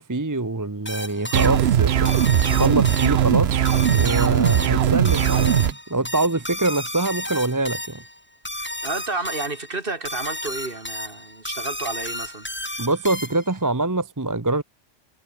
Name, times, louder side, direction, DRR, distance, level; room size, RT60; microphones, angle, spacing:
voice 1, 0.0-1.9 2.3-3.6 3.9-8.0 12.8-14.6, right 2 dB, 20° right, 0.9 m, -24 dB
sound 1, 0.9-13.6, left 1 dB, 10° left, 2.4 m, -33 dB
sound 2, 1.3-5.7, right 10 dB, 65° right, 1.0 m, -19 dB
voice 2, 8.6-12.5, right 3 dB, 50° right, 2.7 m, -31 dB
omnidirectional pair, 1.2 m